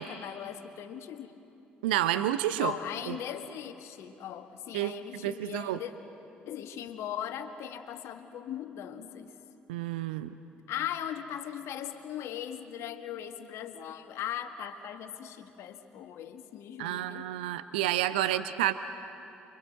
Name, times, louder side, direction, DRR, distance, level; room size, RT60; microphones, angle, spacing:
voice 1, 0.0-1.3 2.6-5.9 6.5-9.4 10.7-17.3 18.2-18.3, left 10 dB, 60° left, 8 dB, 1.6 m, -39 dB
voice 2, 1.8-2.7 3.1-3.2 4.7-5.8 9.7-10.3 16.8-18.7, right 13 dB, 75° right, 12 dB, 0.7 m, -30 dB
29.0 x 23.5 x 7.8 m, 2.9 s
figure-of-eight pair, 50°, 5 cm